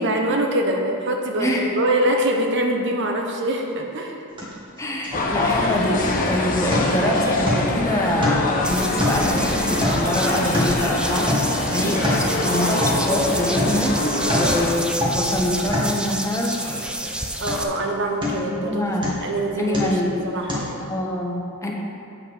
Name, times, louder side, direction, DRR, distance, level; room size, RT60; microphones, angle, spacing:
voice 1, 0.0-4.2 14.3-14.6 17.4-18.8 19.2-20.0 20.2-20.8, right 1 dB, 55° right, 2 dB, 0.9 m, -24 dB
sound 1, 4.4-4.5 4.8-6.3 6.7-7.1 7.5-7.8 8.2-8.6 9.0-10.9 11.3-11.6 11.9-12.3 12.8-13.1 13.6-13.8 14.1-14.6 14.9-15.3 15.7-16.0 16.4-17.1 17.5-17.8 18.2-18.6 19.0-19.3 19.7-20.1 20.5-20.6, left 1 dB, 20° right, 1.8 m, -26 dB
voice 2, 4.8-13.9 14.3-16.6 18.2-19.1 19.6-20.2 20.8-21.7, left 1 dB, 15° left, -2 dB, 1.0 m, -25 dB
sound 2, 5.1-14.7, left 2 dB, 40° left, 0.9 m, -24 dB
sound 3, 8.6-17.6, right 1 dB, 5° right, 0.5 m, -29 dB
8.6 x 5.5 x 6.3 m, 2.6 s
head